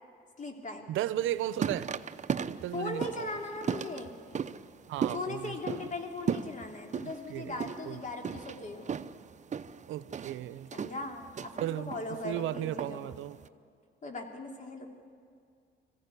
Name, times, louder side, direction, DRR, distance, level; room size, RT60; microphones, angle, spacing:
voice 1, 0.4-0.9 2.7-4.2 5.1-8.9 10.7-13.2 14.0-14.9, left 3 dB, 40° left, 3 dB, 3.0 m, -39 dB
voice 2, 0.9-1.9 2.5-3.4 4.9-5.9 7.0-7.6 7.9-8.1 9.9-10.7 11.6-13.4, right 13 dB, 85° right, 15 dB, 0.7 m, -35 dB
sound 1, 1.2-13.5, right 7 dB, 35° right, 0.7 m, -37 dB
21.5 x 15.5 x 9.7 m, 2.3 s
cardioid pair, 90°, 20 cm